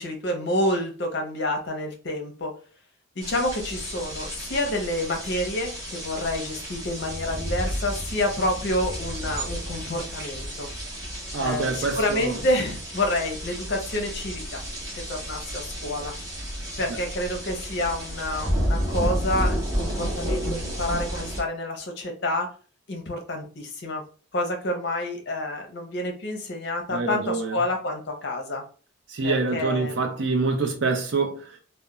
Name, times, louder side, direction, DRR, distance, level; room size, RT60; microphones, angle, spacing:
voice 1, 0.0-2.5 3.2-10.7 11.4-14.6 15.1-16.1 16.8-22.5 22.9-24.1 24.3-28.6 29.2-30.0, left 1 dB, 55° left, 0.6 m, -28 dB
sound 1, 3.2-21.4, equal, 15° right, 0.8 m, -31 dB
voice 2, 11.3-12.4 26.9-27.6 29.1-31.6, right 3 dB, 65° right, 0.6 m, -26 dB
2.3 x 2.1 x 2.9 m
head